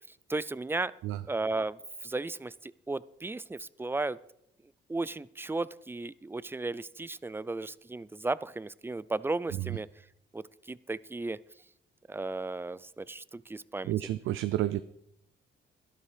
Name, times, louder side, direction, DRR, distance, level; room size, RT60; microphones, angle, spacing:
voice 1, 0.1-0.9 1.3-4.2 4.9-9.9 10.3-11.4 12.1-13.9, right 2 dB, 10° right, 20 dB, 0.4 m, -35 dB
voice 2, 13.9-14.8, right 14 dB, 80° right, 14 dB, 0.5 m, -30 dB
12.0 x 11.5 x 5.0 m, 0.78 s
cardioid pair, 90°, 20 cm